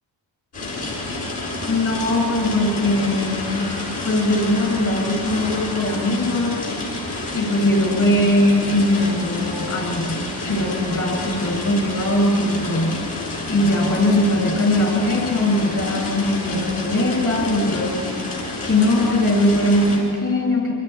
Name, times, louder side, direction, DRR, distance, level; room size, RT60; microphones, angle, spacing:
sound 1, 0.5-20.0, left 2 dB, 60° left, 6.8 m, -29 dB
voice 1, 1.7-3.8 4.0-6.6 7.3-10.2 10.4-13.0 13.5-18.1 18.6-20.7, left 1 dB, 40° left, -1 dB, 6.8 m, -20 dB
28.0 x 25.5 x 4.8 m, 2.5 s
cardioid pair, 110°, 45 cm